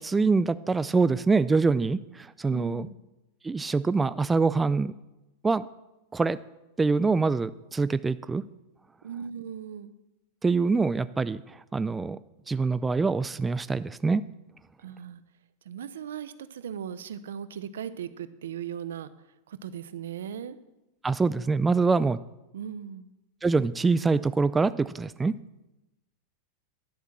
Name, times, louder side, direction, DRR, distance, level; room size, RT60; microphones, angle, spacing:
voice 1, 0.0-2.9 3.4-4.9 5.4-5.7 6.1-6.4 6.8-8.4 10.4-12.2 12.5-14.2 21.0-22.2 23.4-25.3, right 4 dB, 10° right, 15 dB, 0.3 m, -25 dB
voice 2, 2.5-3.0 9.0-9.9 14.8-15.2 15.6-19.1 19.5-20.6 22.5-23.1, right 8 dB, 90° right, 14 dB, 0.7 m, -38 dB
11.0 x 5.8 x 7.4 m, 0.99 s
supercardioid pair, 135°, 0 cm